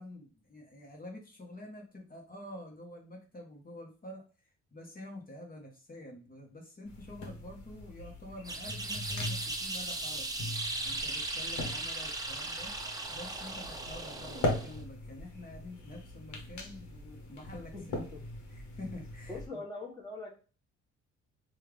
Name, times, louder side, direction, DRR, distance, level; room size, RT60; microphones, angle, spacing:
voice 1, 0.0-4.2 4.7-10.2 10.8-12.7 13.1-18.0 18.5-19.6, left 1 dB, 30° left, 0 dB, 1.0 m, -47 dB
sound 1, 6.8-19.5, left 2 dB, 70° left, 1.1 m, -41 dB
sound 2, 8.4-14.8, right 2 dB, 10° right, 0.6 m, -37 dB
voice 2, 17.7-18.2 19.3-20.3, left 2 dB, 15° left, -4 dB, 1.4 m, -42 dB
3.3 x 2.4 x 3.3 m, 0.36 s
cardioid pair, 90°, 30 cm